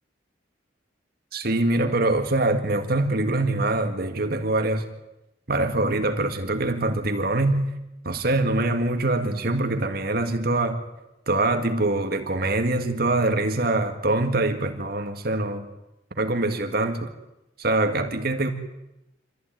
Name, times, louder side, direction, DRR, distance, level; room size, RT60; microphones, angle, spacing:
voice 1, 1.3-4.9 5.5-7.7 8.0-10.8 11.3-15.7 16.1-17.1 17.6-18.5, right 2 dB, 55° right, 6 dB, 1.9 m, -24 dB
25.5 x 15.0 x 9.1 m, 0.93 s
head